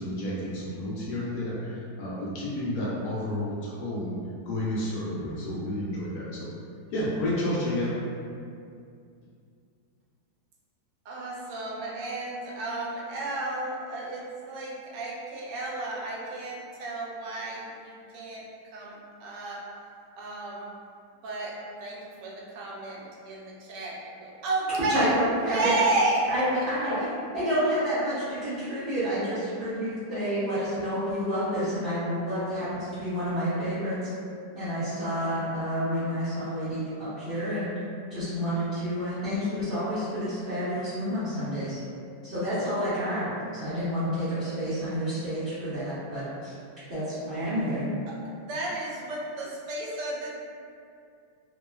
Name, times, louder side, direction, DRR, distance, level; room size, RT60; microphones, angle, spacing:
voice 1, 0.0-1.7 2.0-4.1 4.4-6.3 6.9-7.9, left 1 dB, 70° left, -7 dB, 1.1 m, -30 dB
voice 2, 11.0-18.4 18.7-19.6 20.2-20.7 21.2-21.5 21.8-25.1 25.5-26.2 26.5-26.6 27.0-27.1 48.1-50.3, right 2 dB, 85° right, -4 dB, 1.2 m, -32 dB
voice 3, 24.9-25.8 26.3-27.1 27.3-34.0 34.5-37.7 38.1-41.8 42.2-46.5 46.9-47.9, equal, 45° right, -16 dB, 0.7 m, -29 dB
2.9 x 2.2 x 2.2 m, 2.4 s
omnidirectional pair, 1.8 m